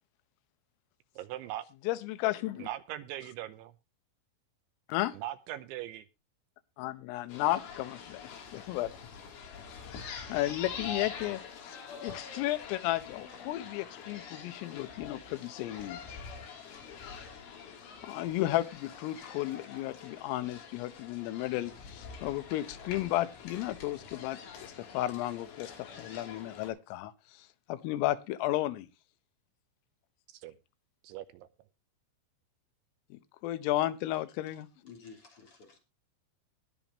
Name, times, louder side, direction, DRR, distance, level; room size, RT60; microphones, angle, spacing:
voice 1, 1.2-1.7 2.6-3.7 5.1-6.1 30.3-30.6 31.0-31.5, right 13 dB, 80° right, 3.0 m, -40 dB
voice 2, 1.9-2.7 4.9-5.2 6.8-8.9 9.9-16.0 18.0-28.9 33.1-34.7, left 15 dB, 90° left, 3.6 m, -34 dB
sound 1, 7.3-26.7, left 6 dB, 70° left, 5.5 m, -45 dB
voice 3, 34.5-35.8, left 5 dB, 30° left, 3.4 m, -53 dB
21.0 x 7.0 x 2.9 m
omnidirectional pair, 5.8 m